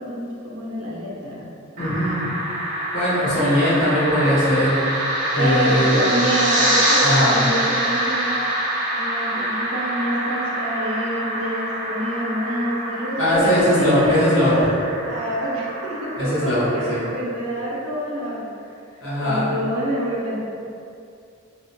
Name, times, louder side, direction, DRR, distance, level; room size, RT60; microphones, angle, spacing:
voice 1, 0.0-1.5 5.4-8.5 8.9-14.7 15.1-18.5 19.2-20.4, right 1 dB, 90° right, -6 dB, 0.7 m, -26 dB
voice 2, 1.8-2.3 2.9-6.1 7.0-7.4 13.2-14.5 16.2-16.6 16.9-17.0 19.0-19.5, equal, 60° left, -11 dB, 0.9 m, -20 dB
sound 1, 1.8-17.1, right 1 dB, 35° right, 0.5 m, -25 dB
2.4 x 2.0 x 2.7 m, 2.5 s
head